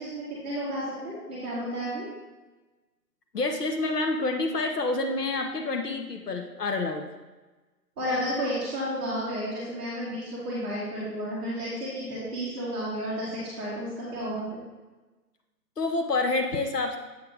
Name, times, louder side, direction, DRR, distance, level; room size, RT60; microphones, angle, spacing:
voice 1, 0.0-2.1 8.0-14.6, equal, 5° right, -11 dB, 1.0 m, -32 dB
voice 2, 3.3-7.1 15.8-17.0, left 3 dB, 70° left, 4 dB, 1.1 m, -28 dB
7.7 x 4.0 x 4.9 m, 1.2 s
figure-of-eight pair, 150°, 50 cm